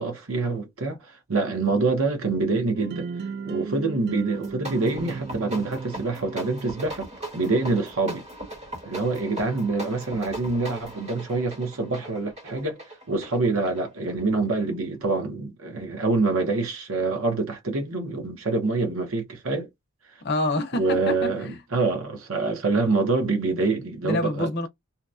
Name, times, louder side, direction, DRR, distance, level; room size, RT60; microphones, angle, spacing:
voice 1, 0.0-3.1 3.4-8.2 8.9-19.7 20.8-24.5, right 3 dB, 70° right, 0.9 m, -26 dB
sound 1, 2.7-6.7, right 5 dB, 50° right, 0.4 m, -35 dB
sound 2, 4.3-14.6, right 1 dB, 30° right, 1.2 m, -39 dB
voice 2, 20.2-21.6 24.0-24.7, left 2 dB, 50° left, 0.7 m, -27 dB
2.8 x 2.2 x 2.4 m
head